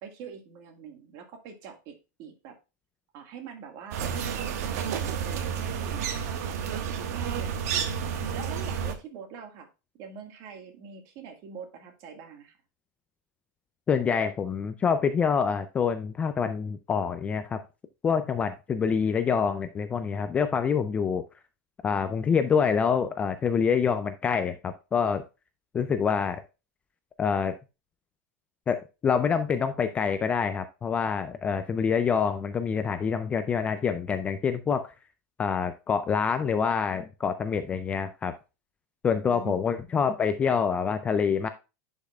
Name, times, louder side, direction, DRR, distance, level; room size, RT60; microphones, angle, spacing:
voice 1, 0.0-2.6 3.1-8.0 8.3-9.7 10.0-12.6 39.1-39.6, right 6 dB, 40° right, 1.7 m, -44 dB
sound 1, 3.9-9.0, right 7 dB, 55° right, 1.1 m, -30 dB
voice 2, 13.9-17.6 18.0-21.2 21.8-25.2 25.7-26.4 27.2-27.5 28.7-34.9 35.4-38.3 39.0-41.5, left 6 dB, 15° left, 0.3 m, -26 dB
10.0 x 5.3 x 2.3 m
supercardioid pair, 160°, 10 cm